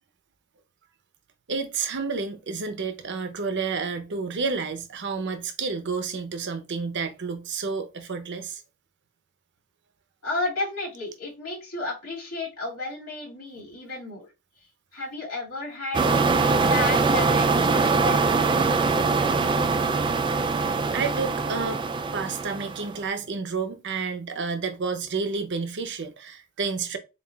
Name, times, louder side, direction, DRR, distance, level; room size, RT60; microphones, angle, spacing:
voice 1, 1.5-8.6 20.9-21.8 22.1-27.0, right 4 dB, 55° right, 0.7 m, -30 dB
voice 2, 10.2-14.3 14.9-18.2, left 2 dB, 90° left, 2.3 m, -33 dB
sound 1, 15.9-23.0, right 4 dB, 20° right, 0.3 m, -23 dB
7.2 x 2.4 x 2.3 m
head